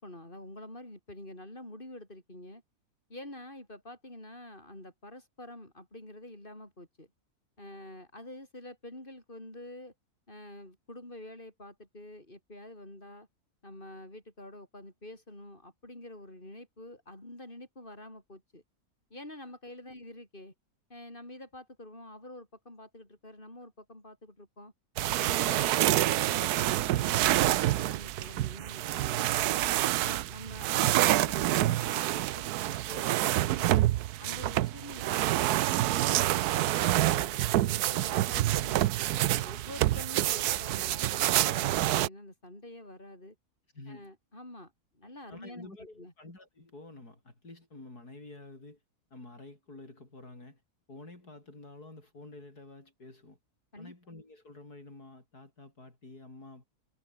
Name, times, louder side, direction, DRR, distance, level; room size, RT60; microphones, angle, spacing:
voice 1, 0.0-2.6 3.1-7.1 7.6-9.9 10.3-13.3 13.6-18.6 19.1-20.5 20.9-24.7 25.2-29.6 30.0-33.8 34.2-38.9 39.4-43.4 43.9-46.1 53.7-53.9, left 1 dB, 35° left, 7.9 m, -47 dB
sound 1, 25.0-42.1, right 14 dB, 80° right, 1.2 m, -27 dB
voice 2, 43.7-44.1 45.3-48.8 49.1-50.6 50.9-53.4 53.8-56.6, left 2 dB, 85° left, 7.0 m, -49 dB
omnidirectional pair, 1.6 m